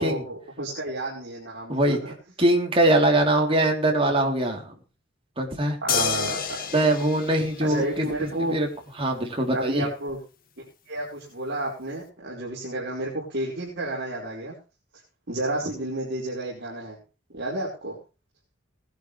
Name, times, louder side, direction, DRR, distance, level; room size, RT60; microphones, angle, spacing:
voice 1, 0.0-2.0 5.8-6.6 7.6-8.6 9.5-10.2 10.9-14.6 15.3-17.0 17.3-18.0, right 1 dB, 55° right, -5 dB, 5.3 m, -31 dB
voice 2, 2.4-4.6 5.4-5.8 6.7-8.7 9.0-9.9, right 1 dB, 30° right, 1 dB, 3.7 m, -22 dB
sound 1, 5.9-8.4 10.1-10.2, left 7 dB, 45° left, 2.0 m, -30 dB
20.0 x 11.5 x 3.4 m, 0.33 s
head